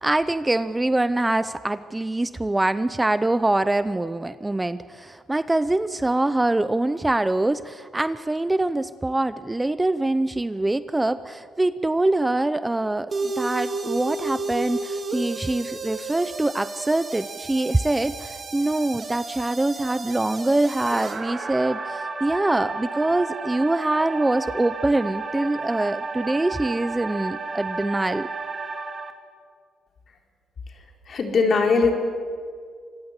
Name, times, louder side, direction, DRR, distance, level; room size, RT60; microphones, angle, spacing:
voice 1, 0.0-28.3, right 2 dB, 15° right, 14 dB, 0.7 m, -24 dB
sound 1, 13.1-29.1, right 3 dB, 35° right, 2.3 m, -32 dB
voice 2, 31.1-31.9, left 4 dB, 50° left, 3 dB, 4.1 m, -20 dB
25.5 x 21.5 x 8.2 m, 2.1 s
cardioid pair, 90°, 0 cm